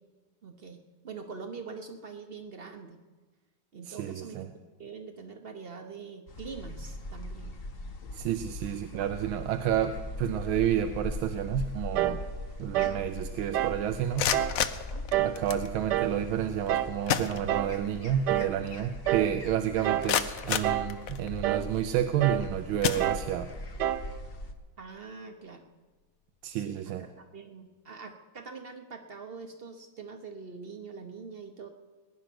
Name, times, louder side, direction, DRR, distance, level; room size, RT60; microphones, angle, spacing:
voice 1, 0.4-0.8 1.0-3.0 3.7-4.5 4.8-7.6 14.9-15.1 24.8-25.6 26.5-31.7, right 5 dB, 50° right, 6 dB, 0.7 m, -44 dB
voice 2, 3.9-4.5 8.1-12.2 12.6-14.3 15.2-23.5 26.4-27.1, right 10 dB, 85° right, 8 dB, 1.5 m, -30 dB
sound 1, 6.3-24.5, left 1 dB, 40° left, 1.0 m, -41 dB
sound 2, 11.9-12.2 12.7-13.0 13.5-13.8 14.3-14.6 15.1-15.4 15.9-16.2 16.7-17.0 17.5-17.8 18.3-18.6 19.1-19.4 19.8-20.2 20.6-21.0 21.4-21.7 22.2-22.5 23.0-23.3 23.8-24.1, right 12 dB, 70° right, 1.1 m, -28 dB
sound 3, 14.0-15.7 16.7-16.8 17.1-18.0 18.3-18.4 19.0-19.1 19.6-21.5 22.1-22.3 22.8-23.6, left 9 dB, 70° left, 0.8 m, -31 dB
19.5 x 10.5 x 6.1 m, 1.3 s
omnidirectional pair, 2.2 m